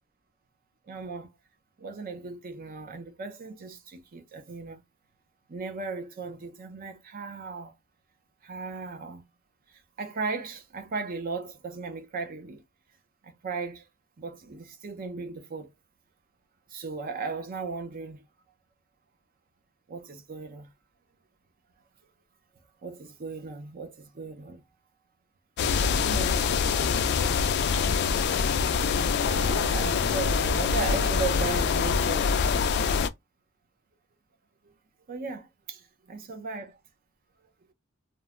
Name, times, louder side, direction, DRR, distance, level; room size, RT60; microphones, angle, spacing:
voice 1, 0.9-1.3 1.8-4.8 5.5-7.7 8.4-9.2 9.7-12.6 13.2-13.9 14.2-15.7 16.7-18.3 19.9-20.7 22.8-24.6 25.8-26.3 26.9-27.7 29.2-32.3 35.1-36.8, right 4 dB, 45° right, 0.5 m, -37 dB
sound 1, 25.6-33.1, left 5 dB, 55° left, 0.3 m, -25 dB
3.0 x 2.1 x 2.3 m
head